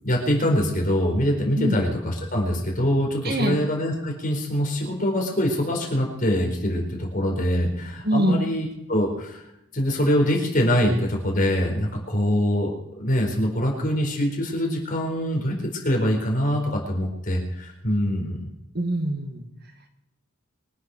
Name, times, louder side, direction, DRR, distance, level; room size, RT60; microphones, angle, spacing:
voice 1, 0.0-9.4 9.7-15.6 15.8-18.5, equal, 40° left, 0 dB, 4.4 m, -24 dB
voice 2, 3.2-3.6 8.0-8.5 18.7-19.4, equal, 50° right, 4 dB, 2.0 m, -23 dB
24.0 x 8.4 x 6.3 m, 0.84 s
head